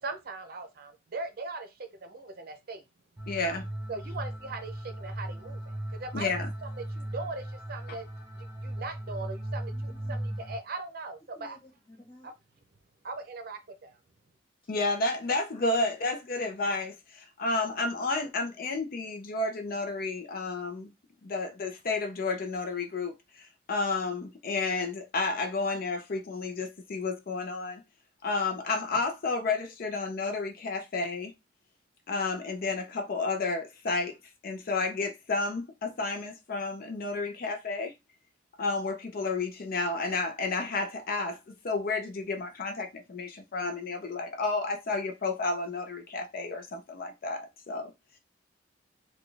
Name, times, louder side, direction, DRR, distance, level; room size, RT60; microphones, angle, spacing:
voice 1, 0.0-2.8 3.9-6.3 6.6-8.1 8.4-11.6 12.2-12.3 13.0-14.0, right 3 dB, 55° right, 0.6 m, -40 dB
sound 1, 3.2-10.6, right 1 dB, 20° right, 1.0 m, -37 dB
voice 2, 3.3-3.7 6.1-6.5 14.7-20.9 21.2-27.8 28.2-31.3 32.1-34.2 34.4-37.9 38.6-47.9, left 3 dB, 50° left, 0.5 m, -31 dB
voice 3, 9.7-10.4 11.3-12.3 15.5-15.9 18.2-18.3, left 1 dB, 30° left, 1.3 m, -52 dB
4.0 x 2.3 x 3.3 m
head